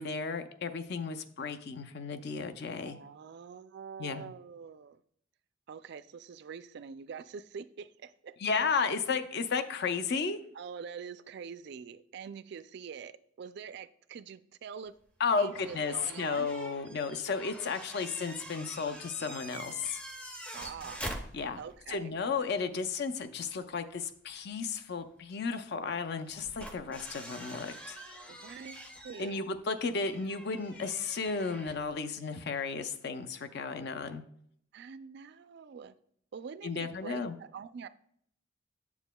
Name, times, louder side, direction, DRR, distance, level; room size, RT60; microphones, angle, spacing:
voice 1, 0.0-3.0 4.0-4.3 8.4-10.4 15.2-20.0 21.3-21.6 21.9-28.0 29.2-34.2 36.6-37.4, left 5 dB, 55° left, 0.5 m, -33 dB
voice 2, 2.8-5.0 5.7-8.4 10.5-14.9 15.4-16.5 20.5-21.1 21.6-22.1 28.3-29.4 34.7-35.9 36.3-37.9, right 6 dB, 55° right, 0.3 m, -45 dB
sound 1, 15.4-21.9 22.2-22.3 24.3-24.4 26.2-32.0, equal, 5° left, 0.5 m, -46 dB
8.0 x 7.1 x 2.2 m
head